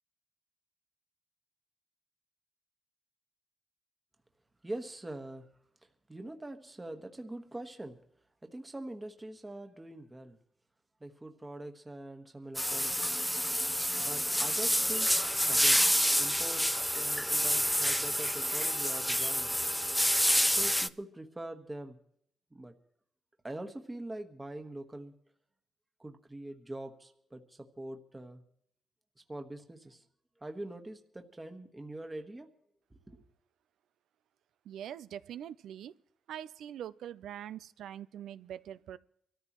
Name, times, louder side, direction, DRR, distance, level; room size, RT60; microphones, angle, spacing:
voice 1, 4.6-5.5 6.1-8.0 8.4-10.4 11.0-13.1 14.0-15.8 16.2-19.5 20.4-22.0 22.5-22.7 23.4-25.1 26.0-28.4 29.3-30.0 30.4-32.5 32.9-33.2, right 1 dB, 15° right, 1.4 m, -43 dB
sound 1, 12.6-20.9, equal, ahead, 0.5 m, -28 dB
voice 2, 34.7-35.9 36.3-39.0, right 10 dB, 85° right, 0.5 m, -43 dB
24.0 x 14.0 x 3.0 m
cardioid pair, 85°, 0 cm